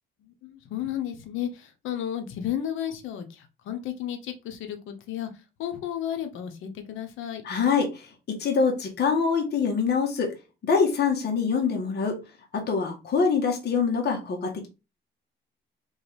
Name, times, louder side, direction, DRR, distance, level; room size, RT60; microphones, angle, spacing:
voice 1, 0.2-5.3 5.6-7.4, left 10 dB, 90° left, 1.0 m, -33 dB
voice 2, 7.4-10.3 10.7-12.2 12.5-14.7, left 5 dB, 55° left, 1.4 m, -25 dB
3.9 x 3.7 x 3.4 m
cardioid pair, 90°, 20 cm